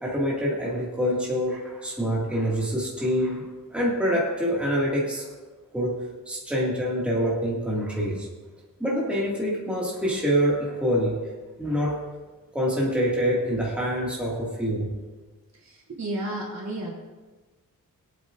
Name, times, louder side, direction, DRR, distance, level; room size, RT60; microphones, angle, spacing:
voice 1, 0.0-5.3 5.7-6.0 6.3-8.3 8.8-11.2 11.6-12.0 12.5-14.9, equal, 5° right, -5 dB, 2.1 m, -26 dB
voice 2, 15.5-16.9, right 1 dB, 55° right, -3 dB, 3.3 m, -32 dB
23.0 x 8.8 x 2.6 m, 1.3 s
wide cardioid pair, 175°, 34 cm